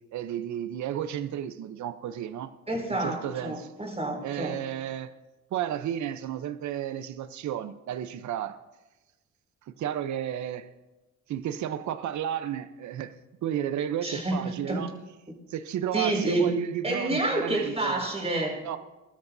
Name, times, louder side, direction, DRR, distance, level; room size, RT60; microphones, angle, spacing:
voice 1, 0.1-2.5 2.9-3.7 4.2-5.1 5.5-8.6 9.7-10.7 11.3-13.1 13.4-14.9 15.5-18.0 18.6-18.8, right 10 dB, 70° right, 0.8 m, -32 dB
voice 2, 2.7-4.6 14.0-14.8 15.9-16.5 16.8-18.6, right 1 dB, 20° right, 5.3 m, -29 dB
21.5 x 13.0 x 2.7 m
cardioid pair, 90°, 30 cm